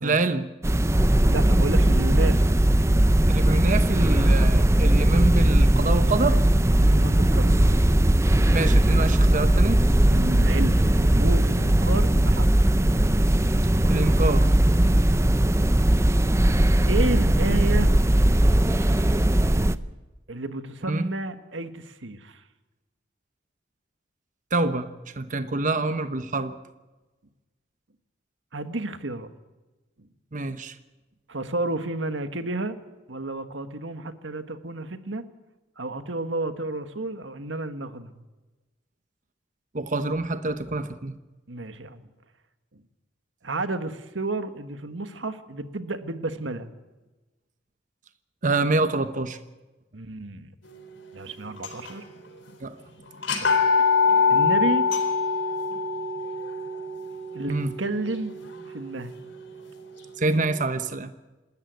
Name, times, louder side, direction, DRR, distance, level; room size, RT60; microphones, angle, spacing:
voice 1, 0.0-0.5 3.3-6.4 8.5-9.8 13.9-14.5 15.2-15.4 20.9-21.1 24.5-24.9 25.2-26.5 30.3-30.8 39.7-41.1 48.4-49.4 52.6-52.7 57.5-57.7 60.2-61.1, right 3 dB, 45° right, 9 dB, 1.0 m, -26 dB
sound 1, 0.6-19.7, right 1 dB, 15° right, 0.6 m, -19 dB
voice 2, 1.2-2.5 6.8-7.8 10.1-12.5 14.8-15.1 16.9-17.9 20.3-22.4 28.5-29.3 31.3-32.8 33.1-35.2 35.8-38.2 41.5-42.0 43.4-46.7 49.9-50.5 51.1-52.0 53.4-53.5 54.3-54.8 57.3-58.3 58.7-59.1, right 2 dB, 85° right, 9 dB, 1.5 m, -31 dB
sound 2, 51.6-52.1 52.5-52.6 53.2-59.1, left 5 dB, 85° left, 3.9 m, -24 dB
27.0 x 13.5 x 9.4 m, 1.1 s
head